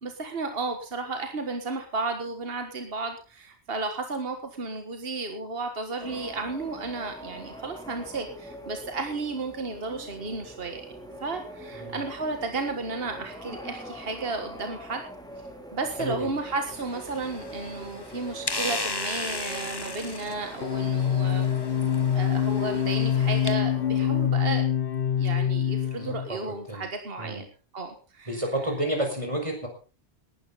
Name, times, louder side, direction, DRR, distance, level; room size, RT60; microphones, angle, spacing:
voice 1, 0.0-10.8 11.2-15.0 15.7-21.5 22.1-24.7 25.2-27.4 27.7-28.3, right 3 dB, 60° right, 5 dB, 1.9 m, -33 dB
sound 1, 6.0-24.3, equal, 5° left, 3.6 m, -43 dB
sound 2, 16.7-23.5, left 2 dB, 20° left, 1.3 m, -36 dB
sound 3, 20.6-26.3, left 9 dB, 60° left, 1.0 m, -25 dB
voice 2, 25.9-26.9 27.2-27.4 28.3-29.7, right 1 dB, 30° right, 2 dB, 5.3 m, -31 dB
18.5 x 12.5 x 4.1 m, 0.35 s
omnidirectional pair, 1.1 m